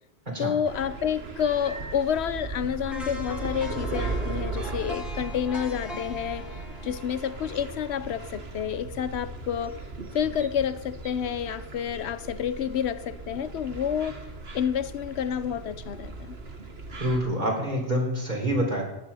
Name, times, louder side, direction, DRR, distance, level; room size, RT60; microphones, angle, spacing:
voice 1, 0.4-6.5 6.8-9.8 10.1-14.2 14.5-16.4, left 8 dB, 85° left, 14 dB, 1.0 m, -29 dB
sound 1, 0.7-17.2, right 3 dB, 70° right, 1.8 m, -37 dB
sound 2, 2.9-8.9 9.3-9.4, left 1 dB, ahead, 2.1 m, -41 dB
voice 2, 17.0-18.8, right 1 dB, 45° right, 0 dB, 3.8 m, -26 dB
17.0 x 9.7 x 5.5 m, 0.93 s
omnidirectional pair, 1.1 m